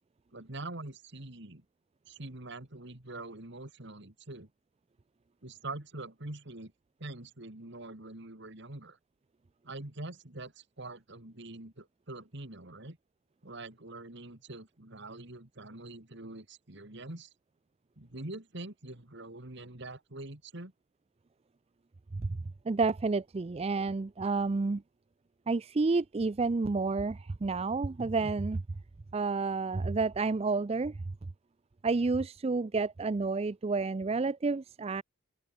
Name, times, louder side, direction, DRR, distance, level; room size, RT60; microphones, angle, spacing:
voice 1, 0.3-1.6 2.1-4.5 5.4-6.7 7.0-9.0 9.6-13.0 13.4-17.3 18.0-20.7, right 2 dB, 60° right, 2.5 m, -44 dB
voice 2, 22.7-24.8 25.5-28.6 29.1-30.9 31.8-35.0, right 3 dB, 30° right, 0.4 m, -30 dB
head